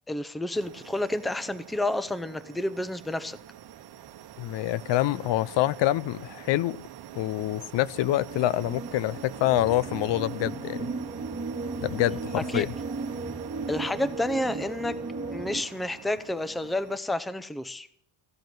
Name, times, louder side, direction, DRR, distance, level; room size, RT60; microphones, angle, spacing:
voice 1, 0.1-3.4 12.4-12.7 13.7-14.9 15.3-17.9, left 1 dB, ahead, 0.6 m, -30 dB
sound 1, 0.5-17.0, right 11 dB, 55° right, 1.1 m, -45 dB
voice 2, 4.4-6.8 7.2-10.9 11.8-12.7, left 14 dB, 65° left, 0.6 m, -26 dB
sound 2, 8.3-15.6, right 3 dB, 20° right, 2.1 m, -36 dB
15.5 x 8.0 x 9.1 m
cardioid pair, 135°, 46 cm